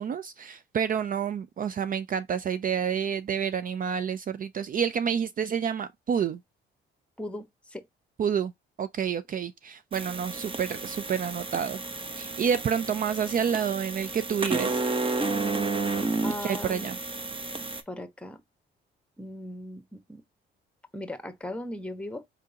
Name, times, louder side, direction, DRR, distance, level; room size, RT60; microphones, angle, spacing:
voice 1, 0.0-6.4 8.2-8.5 8.8-11.8 12.2-14.8 16.4-17.0, right 7 dB, 45° right, 0.4 m, -29 dB
voice 2, 7.2-7.9 16.2-16.9 17.9-18.4 19.2-20.2 20.9-22.2, left 1 dB, 5° left, 1.1 m, -38 dB
sound 1, 9.9-17.8, right 3 dB, 25° right, 1.0 m, -31 dB
4.7 x 3.7 x 2.8 m
cardioid pair, 90°, 20 cm